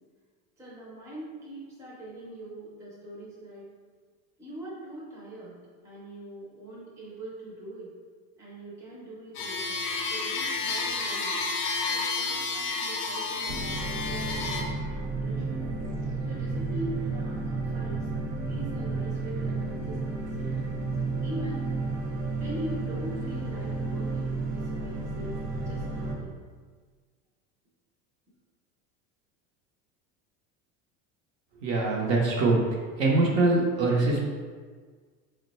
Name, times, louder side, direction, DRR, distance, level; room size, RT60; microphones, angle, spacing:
voice 1, 0.6-3.6 4.4-5.6 5.8-7.9 8.4-11.4 11.9-14.5 14.9-15.6 16.3-18.1 18.4-20.6 20.9-21.6 22.3-26.3, right 1 dB, 10° right, -7 dB, 0.6 m, -42 dB
sound 1, 9.3-14.6, left 4 dB, 45° left, 0.6 m, -31 dB
sound 2, 13.5-26.1, right 3 dB, 90° right, 0.7 m, -32 dB
voice 2, 31.6-32.6 33.0-34.2, right 2 dB, 50° right, -2 dB, 0.7 m, -23 dB
3.8 x 2.1 x 4.0 m, 1.5 s
cardioid pair, 180°, 30 cm